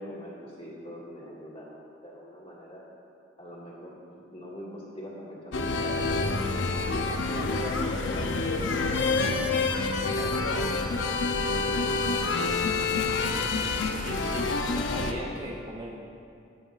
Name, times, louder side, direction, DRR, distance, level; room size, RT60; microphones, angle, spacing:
voice 1, 0.0-2.8 3.4-9.1 9.4-9.5 10.0-10.7 11.3-12.1, equal, 30° left, -5 dB, 1.9 m, -42 dB
sound 1, 5.5-15.1, left 3 dB, 65° left, 0.6 m, -27 dB
voice 2, 14.0-14.5 14.8-16.0, right 1 dB, 20° right, -3 dB, 0.7 m, -38 dB
17.5 x 7.5 x 2.5 m, 2.6 s
head